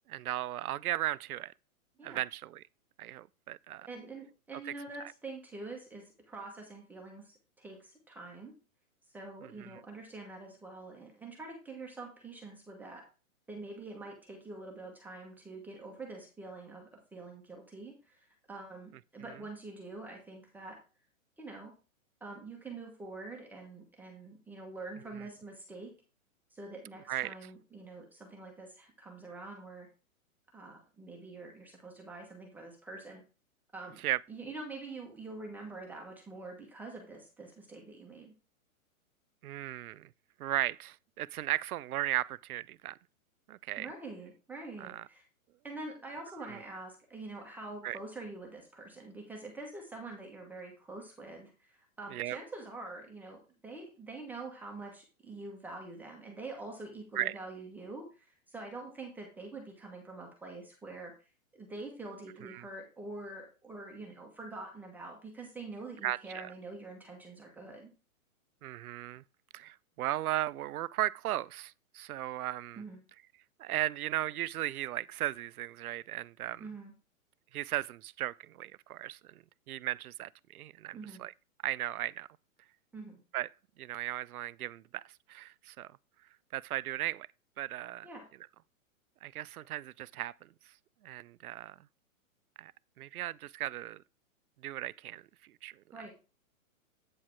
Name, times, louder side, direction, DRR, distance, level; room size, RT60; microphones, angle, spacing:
voice 1, 0.1-1.5 2.0-2.6 3.0-3.9 4.7-4.8 5.0-5.1 9.6-9.8 27.1-27.3 34.0-34.2 39.4-40.1 40.4-43.0 43.5-43.9 44.8-45.1 46.5-46.6 47.8-48.0 52.1-52.4 57.2-57.3 62.4-62.6 66.0-66.5 68.6-69.2 69.5-72.8 73.6-76.6 77.5-81.3 81.6-82.3 83.3-83.5 83.8-86.0 86.5-87.3 87.6-88.1 89.2-90.7 91.0-91.8 92.6-92.7 93.0-94.0 94.6-96.0, right 14 dB, 90° right, 0.5 m, -36 dB
voice 2, 3.9-8.5 9.1-13.0 13.5-20.8 21.4-21.7 22.2-25.9 26.5-29.9 30.5-33.2 33.7-38.3 43.8-45.2 45.6-61.1 61.5-67.9 72.8-73.0 76.6-76.9 80.9-81.2 82.9-83.2 88.0-88.2 95.9-96.1, right 3 dB, 5° right, 1.1 m, -45 dB
8.7 x 4.8 x 4.4 m
hypercardioid pair, 155°, 42 cm